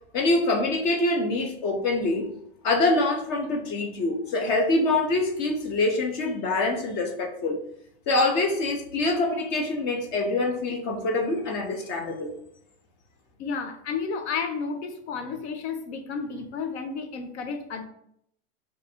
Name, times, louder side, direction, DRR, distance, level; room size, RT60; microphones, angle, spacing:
voice 1, 0.1-2.3 2.6-7.6 8.1-12.3, left 2 dB, 35° left, 3 dB, 0.5 m, -25 dB
voice 2, 13.4-17.8, left 5 dB, 85° left, 6 dB, 0.7 m, -32 dB
2.6 x 2.5 x 4.1 m, 0.71 s
supercardioid pair, 150°, 33 cm